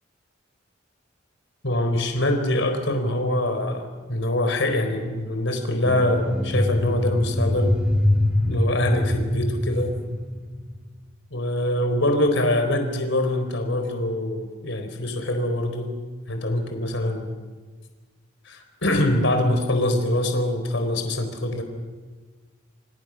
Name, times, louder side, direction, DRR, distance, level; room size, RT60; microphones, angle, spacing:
voice 1, 1.6-7.8 8.5-9.9 11.3-15.9 16.3-17.3 18.4-21.6, left 1 dB, 70° left, 6 dB, 4.2 m, -24 dB
sound 1, 5.8-10.9, left 1 dB, 5° right, 6.2 m, -24 dB
27.5 x 27.0 x 6.3 m, 1.4 s
head